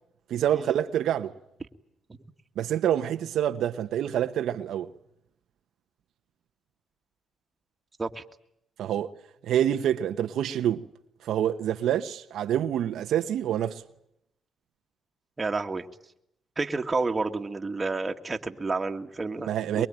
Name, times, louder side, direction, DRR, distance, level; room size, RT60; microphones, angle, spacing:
voice 1, 0.3-1.3 2.6-4.9 8.8-9.1 9.4-10.8 11.2-13.8 19.5-19.9, right 10 dB, 75° right, 1.0 m, -27 dB
voice 2, 15.4-15.9 16.6-19.5 19.7-19.9, right 3 dB, 25° right, 2.0 m, -30 dB
23.5 x 23.0 x 9.0 m
cardioid pair, 90°, 0 cm